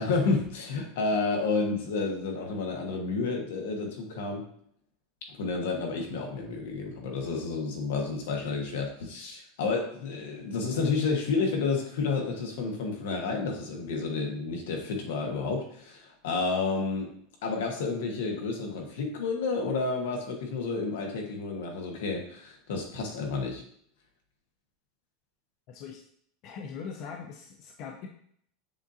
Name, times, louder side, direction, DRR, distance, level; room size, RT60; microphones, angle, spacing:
voice 1, 0.0-4.4 5.3-17.1 17.4-23.6, left 4 dB, 85° left, 2 dB, 1.1 m, -30 dB
voice 2, 25.7-26.0 26.4-28.1, left 6 dB, 45° left, 2 dB, 0.5 m, -41 dB
7.0 x 2.5 x 2.7 m, 0.64 s
supercardioid pair, 155°, 0 cm